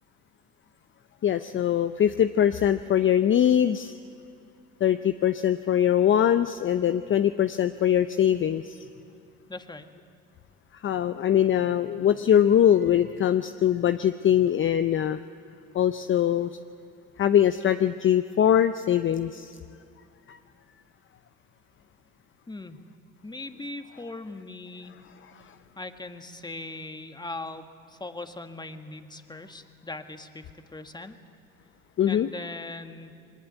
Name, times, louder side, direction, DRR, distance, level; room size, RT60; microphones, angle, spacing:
voice 1, 1.2-3.9 4.8-8.9 10.7-15.2 15.7-16.5 17.2-19.5 20.3-20.4 25.4-25.5 32.0-32.3, left 10 dB, 35° left, 11 dB, 0.7 m, -22 dB
voice 2, 9.5-9.9 22.5-22.8 23.2-25.0 25.8-31.2 32.1-33.1, left 2 dB, 10° left, 7 dB, 1.7 m, -40 dB
22.5 x 19.5 x 9.2 m, 2.4 s
hypercardioid pair, 70°, 34 cm